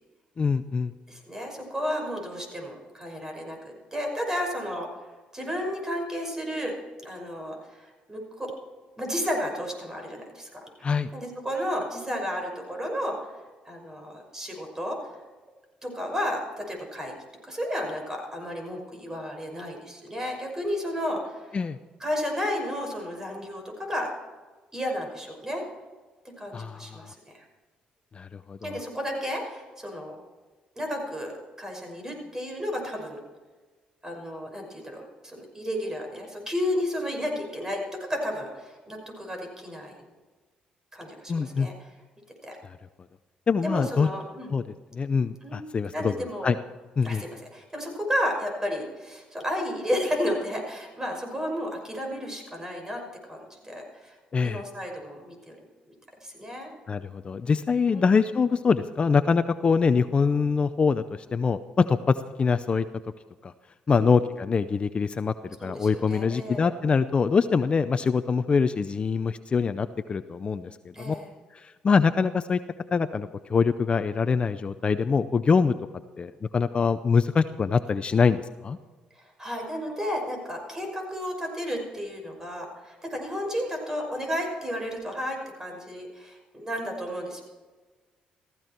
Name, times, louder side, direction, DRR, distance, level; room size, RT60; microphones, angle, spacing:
voice 1, 0.4-0.9 10.8-11.1 21.5-21.8 26.5-27.0 28.1-28.8 41.3-41.7 43.5-44.1 44.5-44.6 44.9-46.6 47.0-47.2 54.3-54.6 56.9-62.9 63.4-63.5 63.9-65.3 65.6-70.7 71.0-71.1 71.5-72.6 72.9-75.7 76.2-78.8, left 5 dB, 40° left, 12 dB, 0.6 m, -24 dB
voice 2, 1.1-4.9 5.3-6.8 7.0-8.5 9.0-10.6 11.1-13.2 13.6-15.0 15.8-17.2 17.5-21.5 22.0-24.1 24.7-25.6 26.2-27.4 28.6-30.2 30.8-33.2 34.0-37.8 38.1-39.9 40.9-41.7 42.4-42.6 43.6-44.5 45.4-45.7 45.9-46.5 47.0-53.0 53.3-54.2 54.4-55.6 56.2-56.7 57.9-58.1 63.9-64.1 65.6-66.7 70.9-71.3 79.2-87.4, equal, 20° right, 2 dB, 5.9 m, -32 dB
15.5 x 15.0 x 4.6 m, 1.3 s
supercardioid pair, 75°, 3 cm